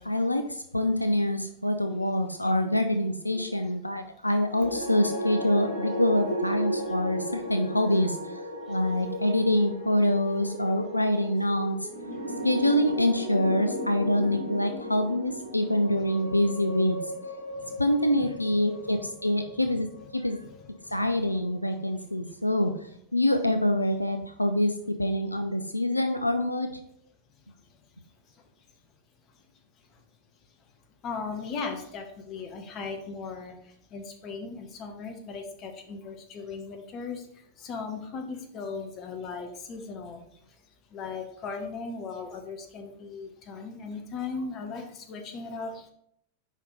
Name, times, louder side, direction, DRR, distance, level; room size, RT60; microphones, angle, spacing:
voice 1, 0.0-8.4 8.7-11.9 12.4-17.0 17.8-19.9 20.1-20.4 20.9-26.8, left 1 dB, 85° left, 7 dB, 0.4 m, -26 dB
sound 1, 4.4-20.7, equal, 70° left, 1.2 m, -35 dB
voice 2, 17.5-17.8 18.2-18.3 18.5-18.6 18.9-19.0 19.3-19.6 20.4-20.6 20.8-21.0 28.3-28.4 29.3-29.4 29.9-30.0 31.0-40.6 40.9-45.9, left 4 dB, 35° left, 4 dB, 1.1 m, -38 dB
5.2 x 4.9 x 4.1 m, 0.72 s
figure-of-eight pair, 90°, 0 cm